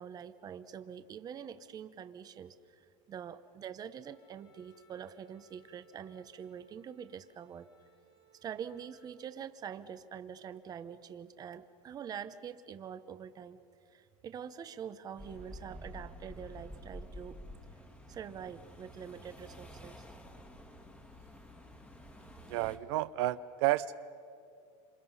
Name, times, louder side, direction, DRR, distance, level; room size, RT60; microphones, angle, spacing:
voice 1, 0.0-7.7 8.4-13.6 13.9-17.4 18.1-20.0, right 8 dB, 25° right, 11 dB, 0.8 m, -45 dB
Wind instrument woodwind instrument, 4.0-9.2, right 4 dB, 70° left, 7.1 m, -66 dB
sound 1, 15.2-22.8, equal, 10° left, 1.6 m, -50 dB
voice 2, 22.5-24.1, right 15 dB, 65° right, 14 dB, 0.6 m, -31 dB
28.0 x 27.0 x 5.6 m, 2.5 s
supercardioid pair, 150°, 16 cm